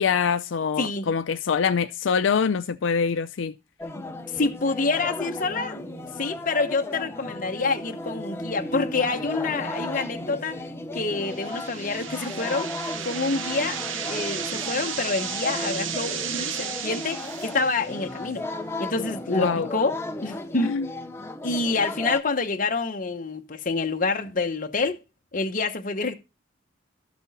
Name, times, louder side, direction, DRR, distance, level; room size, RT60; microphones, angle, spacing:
voice 1, 0.0-3.5 19.3-19.7 20.6-20.9, left 6 dB, 80° left, 0.5 m, -24 dB
voice 2, 0.8-1.1 4.0-4.1 4.3-5.9 6.2-10.6 10.9-12.7 13.0-13.8 14.1-18.4 18.8-20.8 21.4-25.0 25.3-26.1, left 3 dB, 45° left, 0.9 m, -27 dB
sound 1, 3.8-22.2, left 1 dB, 15° left, 0.7 m, -35 dB
sound 2, 11.2-18.1, right 8 dB, 85° right, 0.9 m, -34 dB
12.5 x 6.1 x 4.1 m
head